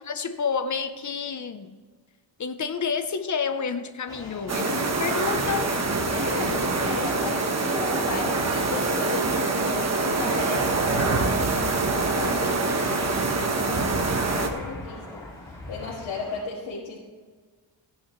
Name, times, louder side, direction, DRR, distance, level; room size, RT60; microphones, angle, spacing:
voice 1, 0.1-1.8 2.4-5.8, left 6 dB, 40° left, 10 dB, 0.7 m, -29 dB
sound 1, 4.1-16.5, left 2 dB, 10° left, 2.2 m, -42 dB
sound 2, 4.5-14.5, right 3 dB, 35° right, 1.1 m, -25 dB
voice 2, 6.0-15.3 15.7-17.0, left 4 dB, 75° left, -6 dB, 2.6 m, -35 dB
16.0 x 10.0 x 3.1 m, 1.5 s
wide cardioid pair, 155°, 46 cm